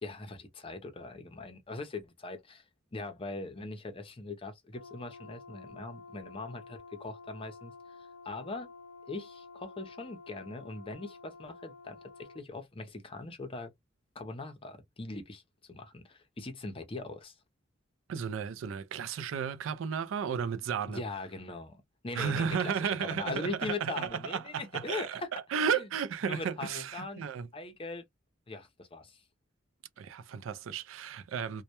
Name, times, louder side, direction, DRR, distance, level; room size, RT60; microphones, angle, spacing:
voice 1, 0.0-2.6 2.9-8.7 9.1-13.7 14.1-15.4 15.7-17.3 20.9-25.3 25.8-25.9 26.2-27.2 27.5-28.0 28.5-29.2, left 3 dB, 30° left, 0.5 m, -41 dB
Brass instrument, 4.7-12.4, left 4 dB, 85° left, 0.5 m, -51 dB
voice 2, 18.1-21.0 22.1-27.5 30.0-31.6, right 7 dB, 85° right, 0.4 m, -33 dB
2.1 x 2.1 x 2.8 m
head